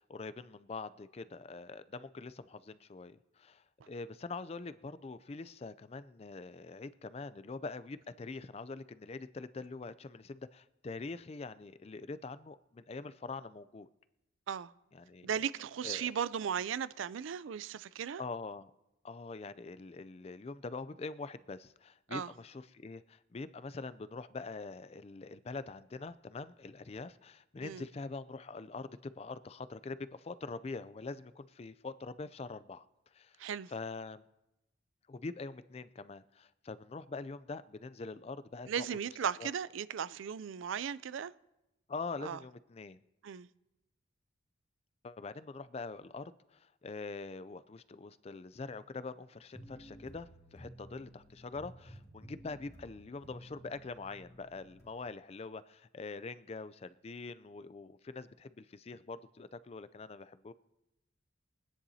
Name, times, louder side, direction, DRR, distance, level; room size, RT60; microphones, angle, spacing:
voice 1, 0.0-13.9 14.9-15.3 15.8-16.1 18.2-18.7 19.0-32.8 33.1-33.4 33.7-34.2 35.1-38.9 39.4-39.5 41.9-43.0 45.0-60.5, left 3 dB, 30° left, 0.4 m, -44 dB
voice 2, 15.2-18.2 22.1-22.3 27.6-27.9 33.4-33.7 38.7-41.3 42.2-42.4 43.2-43.5, right 8 dB, 75° right, 0.4 m, -36 dB
sound 1, 49.5-54.9, equal, 15° left, 2.1 m, -54 dB
23.5 x 10.0 x 2.8 m
head